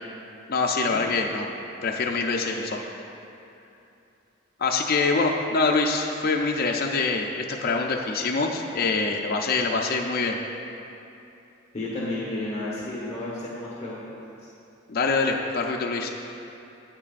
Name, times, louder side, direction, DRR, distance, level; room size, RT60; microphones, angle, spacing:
voice 1, 0.5-1.5 1.8-2.8 4.6-10.4 14.9-16.1, left 3 dB, 50° left, 1 dB, 0.4 m, -25 dB
voice 2, 11.7-14.0, left 2 dB, 35° left, -7 dB, 1.1 m, -31 dB
9.1 x 8.5 x 2.4 m, 2.8 s
head